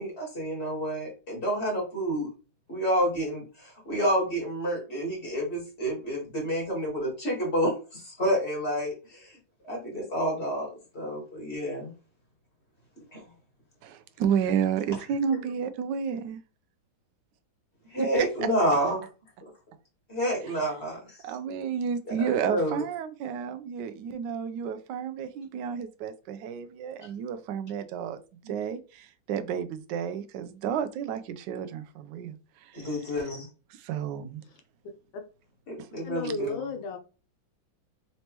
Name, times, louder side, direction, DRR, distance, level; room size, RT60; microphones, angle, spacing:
voice 1, 0.0-2.3 2.7-9.4 9.7-11.9 13.1-13.2 15.3-15.4 17.9-19.0 19.4-19.5 20.1-21.2 22.2-22.8 28.4-28.5 32.7-33.5 35.7-36.7, equal, 35° left, 1.8 m, -29 dB
voice 2, 13.8-16.4 18.0-18.3 21.2-28.2 28.5-32.3 32.7-32.9 33.8-34.4 35.8-35.9, right 7 dB, 70° right, 1.1 m, -31 dB
voice 3, 36.0-37.0, left 2 dB, 75° left, 1.5 m, -33 dB
4.1 x 3.3 x 2.9 m
omnidirectional pair, 2.2 m